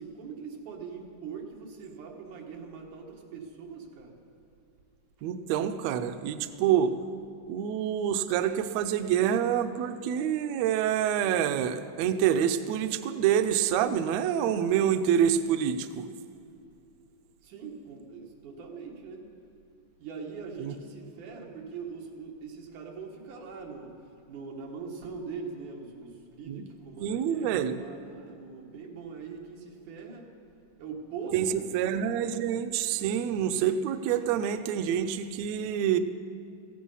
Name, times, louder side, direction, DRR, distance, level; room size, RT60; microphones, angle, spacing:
voice 1, 0.0-4.2 17.4-19.3 20.0-24.0 24.3-30.3 30.8-31.8, right 5 dB, 70° right, 0 dB, 3.0 m, -42 dB
voice 2, 5.2-6.9 7.5-16.0 20.6-20.7 26.5-26.6 27.0-27.8 31.3-31.5 31.7-36.0, right 9 dB, 85° right, 9 dB, 1.5 m, -27 dB
16.5 x 15.0 x 5.6 m, 2.5 s
omnidirectional pair, 3.8 m